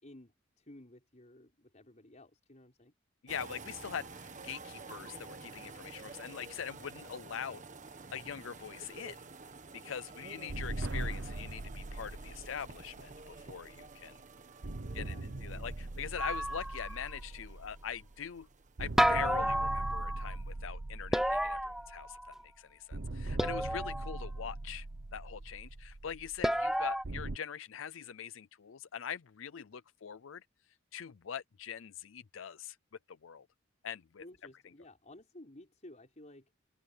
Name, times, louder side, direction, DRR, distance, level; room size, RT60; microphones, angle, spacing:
voice 1, 0.0-2.9 14.8-16.3 34.2-36.5, left 1 dB, 40° left, 5.0 m, -55 dB
voice 2, 3.2-7.6 8.1-9.2 9.7-14.2 14.9-18.5 18.8-24.9 25.1-30.4 30.9-32.8 33.2-33.4 33.8-34.2, left 8 dB, 90° left, 0.5 m, -43 dB
sound 1, 3.3-19.6 19.8-20.1, right 4 dB, 40° right, 1.4 m, -51 dB
sound 2, 10.5-14.1 14.6-18.4 18.8-22.4 22.9-27.4, right 2 dB, 65° right, 1.0 m, -41 dB
sound 3, 16.2-17.1 19.0-20.3 21.1-22.4 23.4-24.2 26.4-27.0, equal, ahead, 0.8 m, -31 dB
open air
head